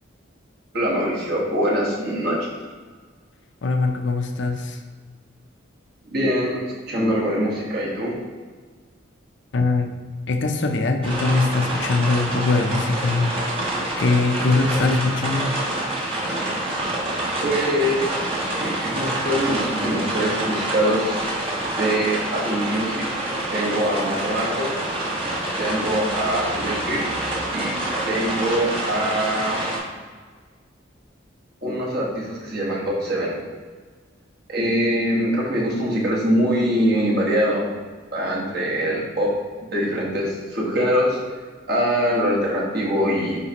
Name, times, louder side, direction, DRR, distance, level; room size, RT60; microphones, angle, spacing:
voice 1, 0.7-2.5 6.1-8.2 17.4-18.2 18.6-21.3 21.7-23.0 23.5-24.7 25.6-27.0 27.5-27.8 28.0-29.6 31.6-33.4 34.5-37.7 38.1-39.3 39.7-41.2 41.7-43.4, equal, 55° right, -4 dB, 1.5 m, -23 dB
voice 2, 3.6-4.8 9.5-9.9 10.3-13.3 14.0-15.5, left 3 dB, 65° left, 5 dB, 0.6 m, -21 dB
sound 1, 11.0-29.8, right 1 dB, 30° right, 1.3 m, -27 dB
9.3 x 3.5 x 2.9 m, 1.5 s
head